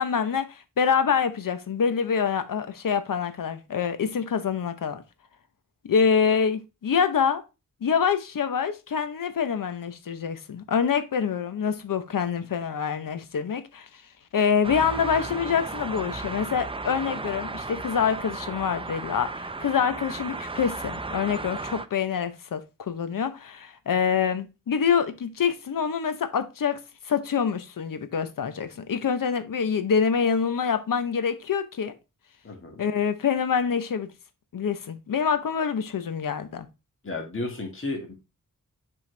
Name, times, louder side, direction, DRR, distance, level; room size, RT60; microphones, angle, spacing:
voice 1, 0.0-5.0 5.8-7.4 7.8-13.9 14.3-26.8 27.0-31.9 32.8-34.1 34.5-36.7, left 6 dB, 85° left, 0.8 m, -26 dB
sound 1, 14.6-21.9, right 3 dB, 15° right, 0.4 m, -35 dB
voice 2, 32.4-32.8 37.0-38.1, left 2 dB, 40° left, 1.8 m, -33 dB
7.4 x 4.5 x 3.2 m
wide cardioid pair, 95°, 32 cm